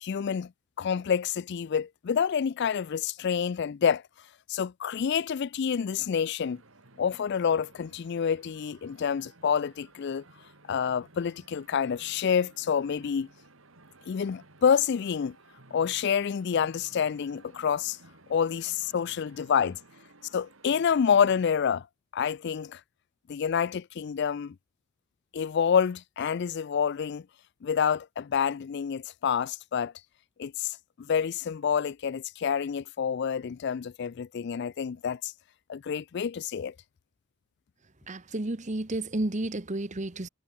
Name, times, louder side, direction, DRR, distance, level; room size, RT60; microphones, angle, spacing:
voice 1, 0.0-0.5 0.8-4.0 4.5-6.6 7.0-10.2 10.7-13.3 14.1-15.4 15.7-18.0 18.3-19.8 20.3-21.9 22.1-22.8 23.3-24.5 25.3-27.2 27.6-29.9 30.4-30.8 31.1-35.3 35.7-36.7, left 7 dB, 55° left, 0.4 m, -28 dB
sound 1, 6.4-21.5, right 2 dB, 70° right, 2.9 m, -56 dB
voice 2, 38.1-40.3, right 2 dB, 35° right, 1.1 m, -31 dB
head